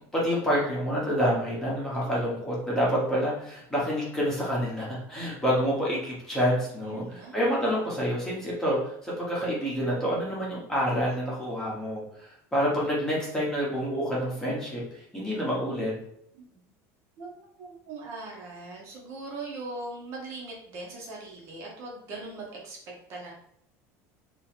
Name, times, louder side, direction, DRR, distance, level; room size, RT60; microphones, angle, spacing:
voice 1, 0.1-15.9, equal, 5° left, -6 dB, 1.0 m, -28 dB
voice 2, 2.0-2.8 6.8-7.7 16.3-16.6 17.2-22.8 23.1-23.3, right 3 dB, 35° right, -2 dB, 0.8 m, -41 dB
3.0 x 2.7 x 4.3 m, 0.72 s
cardioid pair, 180°, 7 cm